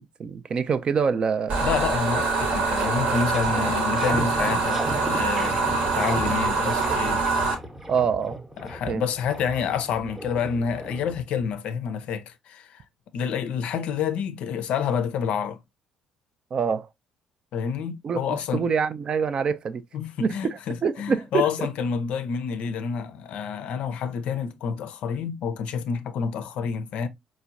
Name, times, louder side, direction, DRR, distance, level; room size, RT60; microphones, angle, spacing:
voice 1, 0.0-1.7 3.5-3.7 7.9-8.4 8.9-9.0 16.5-16.9 18.0-19.8 20.2-21.4, right 6 dB, 40° right, 0.4 m, -26 dB
sound 1, 1.5-7.5, right 3 dB, 55° right, 0.9 m, -24 dB
voice 2, 1.6-5.6 5.9-7.2 8.6-12.8 13.1-15.6 17.5-18.7 19.9-27.1, left 7 dB, 60° left, 0.5 m, -28 dB
sound 2, 2.4-11.5, right 1 dB, 15° right, 0.7 m, -37 dB
4.5 x 2.1 x 2.4 m
figure-of-eight pair, 50°, 2 cm